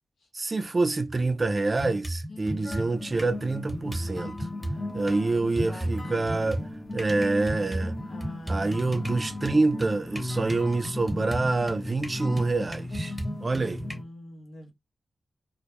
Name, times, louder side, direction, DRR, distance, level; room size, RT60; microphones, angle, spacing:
voice 1, 0.3-4.4 4.9-6.6 6.9-7.9 8.5-13.1 13.4-13.9, right 3 dB, 40° right, 0.3 m, -26 dB
sound 1, 1.1-1.2 1.8-3.4 3.7-5.2 5.6-14.0, right 1 dB, ahead, 0.8 m, -35 dB
voice 2, 2.3-2.7 5.0-6.4 8.1-9.4 13.5-14.7, left 1 dB, 90° left, 0.7 m, -44 dB
sound 2, 2.6-14.0, left 1 dB, 40° left, 0.7 m, -37 dB
2.1 x 2.0 x 3.0 m
cardioid pair, 55°, 0 cm